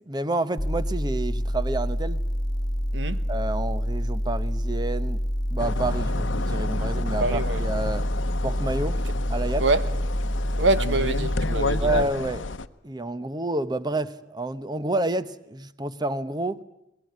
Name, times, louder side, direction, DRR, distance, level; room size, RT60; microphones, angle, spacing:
voice 1, 0.1-2.2 3.3-5.2 5.5-8.1 8.4-9.0 9.3-9.6 11.8-12.5 12.8-16.6, right 2 dB, 20° right, 0.9 m, -29 dB
sound 1, 0.6-12.0, equal, 20° left, 1.7 m, -27 dB
voice 2, 2.9-3.2 7.2-7.6 9.6-9.9 10.6-12.1, right 2 dB, 70° right, 1.2 m, -25 dB
sound 2, 5.6-12.7, left 3 dB, 75° left, 0.9 m, -32 dB
23.0 x 20.5 x 9.4 m
head